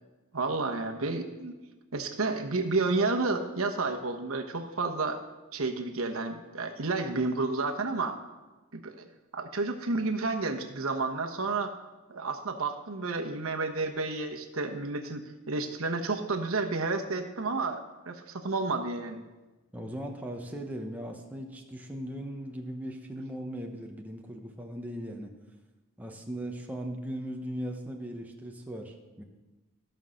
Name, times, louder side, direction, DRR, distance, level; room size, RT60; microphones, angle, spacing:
voice 1, 0.3-1.5 1.9-5.2 5.5-8.2 8.7-9.1 9.3-11.8 12.1-19.2, right 3 dB, 70° right, 4 dB, 1.1 m, -31 dB
voice 2, 19.7-25.3 26.0-29.2, equal, 5° right, 1 dB, 0.9 m, -38 dB
14.5 x 5.6 x 6.4 m, 1.1 s
head